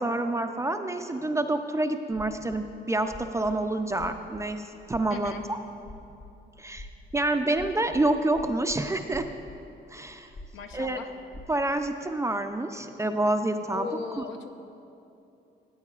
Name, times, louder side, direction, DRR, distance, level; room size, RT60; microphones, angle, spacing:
voice 1, 0.0-4.6 4.9-5.6 6.6-6.9 7.1-9.3 9.9-10.3 10.7-11.0 11.5-14.2, right 2 dB, 15° right, 6 dB, 0.4 m, -28 dB
sound 1, 2.1-2.6 2.9-3.7 3.9-4.4 4.8-5.4 5.7-10.9 11.1-11.7, left 2 dB, 45° left, 0.9 m, -46 dB
voice 2, 5.1-5.4 10.5-11.1 13.7-14.5, left 6 dB, 80° left, 5 dB, 0.8 m, -37 dB
14.5 x 9.0 x 2.4 m, 2.8 s
cardioid pair, 90°, 20 cm